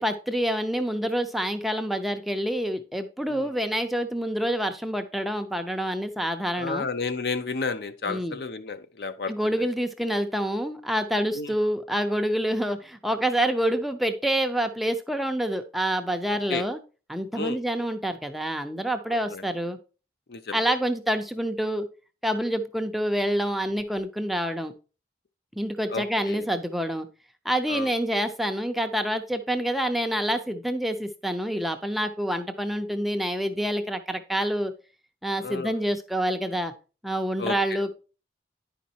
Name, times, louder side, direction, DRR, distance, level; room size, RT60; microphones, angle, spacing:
voice 1, 0.0-6.9 8.1-8.4 9.3-16.8 17.1-19.8 20.5-21.9 22.2-24.7 25.6-27.1 27.4-34.7 35.2-36.7 37.0-37.9, equal, ahead, 7 dB, 0.4 m, -27 dB
voice 2, 6.6-9.3 11.3-11.5 16.5-16.6 17.3-17.6 19.1-19.4 20.3-20.6 25.9-26.5 27.7-27.9 35.4-35.7 37.4-37.5, left 4 dB, 65° left, 10 dB, 0.6 m, -31 dB
10.0 x 5.1 x 2.8 m, 0.34 s
head